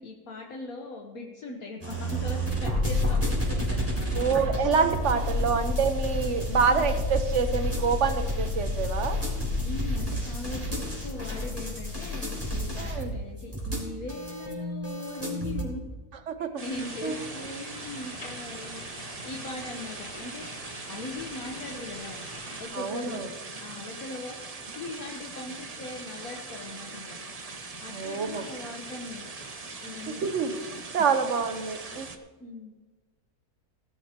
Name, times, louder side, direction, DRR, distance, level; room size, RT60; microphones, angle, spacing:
voice 1, 0.0-4.1 6.6-6.9 9.6-15.8 16.4-20.5 20.9-22.2 22.6-23.2 23.6-24.4 24.7-27.2 27.8-29.3 29.8-30.2 32.4-32.7, left 2 dB, 65° left, 1 dB, 1.6 m, -40 dB
sound 1, 1.8-15.6, left 1 dB, 10° right, 3.7 m, -30 dB
voice 2, 4.1-9.2 12.8-13.1 16.3-16.6 17.0-17.2 22.7-23.3 27.9-28.4 30.1-32.1, right 5 dB, 55° right, 8 dB, 1.3 m, -27 dB
sound 2, 16.6-32.2, right 3 dB, 30° right, 0.8 m, -41 dB
sound 3, 16.7-22.6, left 1 dB, 85° left, 3.9 m, -44 dB
19.0 x 12.5 x 3.0 m, 1.3 s
omnidirectional pair, 1.7 m